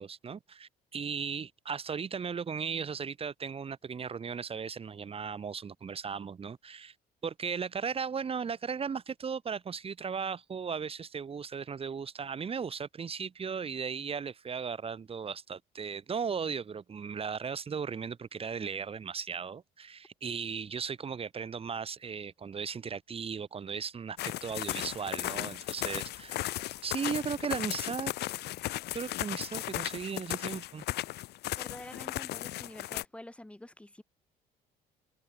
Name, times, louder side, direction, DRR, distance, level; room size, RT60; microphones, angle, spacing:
voice 1, 0.0-6.9 7.2-26.5 26.8-28.1 28.9-30.9, right 6 dB, 35° right, 3.2 m, -36 dB
sound 1, 24.2-33.0, left 16 dB, 80° left, 2.8 m, -36 dB
voice 2, 31.6-34.0, left 1 dB, 5° left, 2.6 m, -47 dB
cardioid pair, 110°, 17 cm